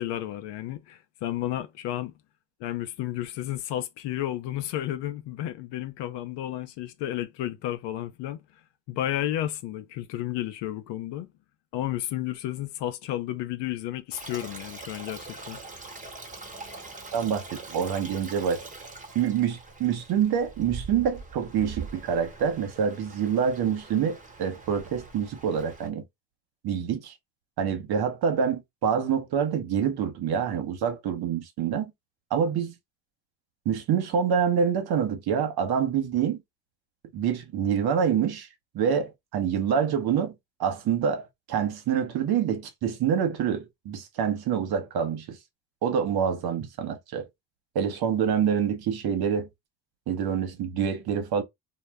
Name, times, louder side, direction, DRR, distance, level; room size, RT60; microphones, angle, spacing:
voice 1, 0.0-2.1 2.6-8.4 8.9-11.3 11.7-15.6, left 13 dB, 60° left, 0.6 m, -32 dB
Stream, 14.1-25.9, right 3 dB, 15° right, 0.9 m, -43 dB
voice 2, 17.1-18.6 19.1-26.0 26.6-27.1 27.6-31.9 32.3-32.7 33.7-36.4 37.1-38.5 38.7-40.3 40.6-45.4 45.8-47.2 47.7-49.5 50.1-51.4, right 7 dB, 50° right, 0.8 m, -26 dB
2.1 x 2.1 x 3.3 m
hypercardioid pair, 65°, 48 cm